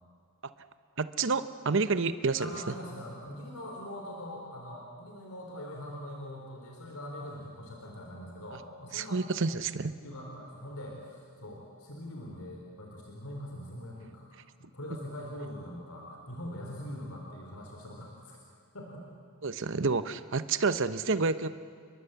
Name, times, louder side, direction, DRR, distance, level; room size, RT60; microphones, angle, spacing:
voice 1, 1.0-2.7 8.9-9.9 19.4-21.5, right 4 dB, 60° right, 12 dB, 1.0 m, -29 dB
voice 2, 2.3-9.2 10.0-14.3 14.6-18.4 18.7-19.1 19.6-19.7, left 1 dB, 80° left, 0 dB, 3.9 m, -42 dB
29.0 x 22.0 x 8.1 m, 2.3 s
head